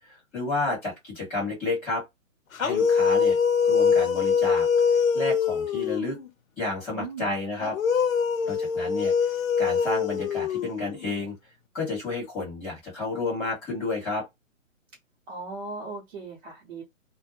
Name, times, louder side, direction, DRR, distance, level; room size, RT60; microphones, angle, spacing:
voice 1, 0.1-2.0 2.6-3.4 3.7-4.7 4.9-6.2 6.6-7.8 8.4-11.3 11.7-14.2, left 3 dB, 5° left, 0.5 m, -31 dB
sound 1, 2.5-6.3 7.6-11.2, left 6 dB, 80° left, 0.7 m, -24 dB
voice 2, 6.9-7.3 15.3-16.8, right 3 dB, 45° right, 0.8 m, -38 dB
2.2 x 2.0 x 2.9 m
hypercardioid pair, 155°, 40 cm